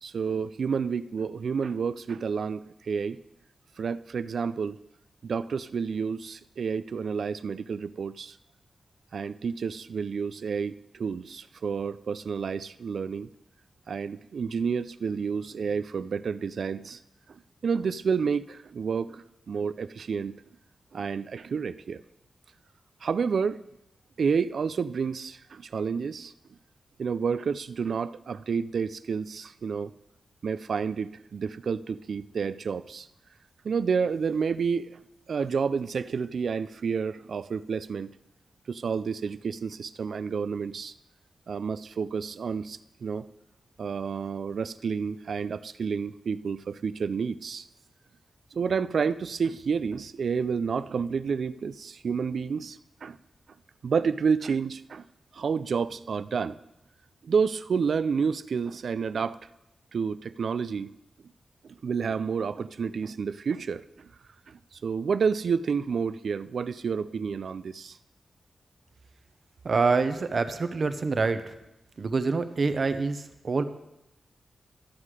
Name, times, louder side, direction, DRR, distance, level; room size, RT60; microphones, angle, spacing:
voice 1, 0.0-3.2 3.8-4.8 5.2-8.4 9.1-13.3 13.9-17.0 17.3-20.4 20.9-22.0 23.0-23.6 24.2-26.3 27.0-29.9 30.4-33.1 33.6-34.9 35.3-38.1 38.7-40.9 41.5-43.2 43.8-47.7 48.5-53.2 53.8-55.0 55.3-56.6 57.2-59.4 59.9-60.9 61.7-63.8 64.5-68.0, right 6 dB, 70° right, 14 dB, 0.4 m, -30 dB
voice 2, 69.6-71.5 72.0-73.6, right 4 dB, 50° right, 10 dB, 0.8 m, -26 dB
13.0 x 7.5 x 4.8 m, 0.88 s
wide cardioid pair, 110°, 0 cm